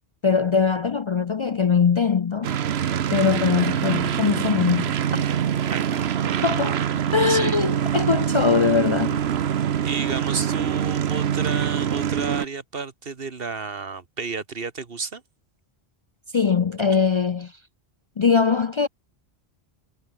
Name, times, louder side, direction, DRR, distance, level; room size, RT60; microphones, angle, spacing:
voice 1, 0.2-2.6 3.1-5.2 6.4-6.8 7.1-9.2 16.3-17.6 18.2-18.9, left 5 dB, 50° left, 0.3 m, -21 dB
sound 1, 2.4-12.5, right 9 dB, 80° right, 1.1 m, -24 dB
voice 2, 5.7-6.0 7.3-7.6 9.8-15.2, right 4 dB, 65° right, 1.8 m, -32 dB
omnidirectional pair, 1.1 m